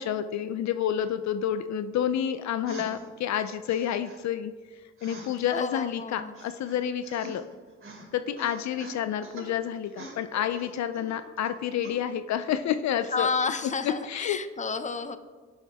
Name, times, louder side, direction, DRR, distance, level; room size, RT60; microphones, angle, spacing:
voice 1, 0.0-7.4 8.1-13.3 13.6-14.4, left 9 dB, 65° left, 11 dB, 0.5 m, -29 dB
sound 1, 2.6-3.0 3.7-4.2 5.0-5.9 6.4-7.6 7.8-8.1 8.4-9.5 9.9-11.5 11.8-12.0, right 2 dB, 45° right, 3.1 m, -43 dB
voice 2, 5.5-6.3 13.1-15.2, left 5 dB, 25° left, 10 dB, 0.8 m, -30 dB
18.0 x 7.1 x 3.5 m, 1.5 s
cardioid pair, 90°, 30 cm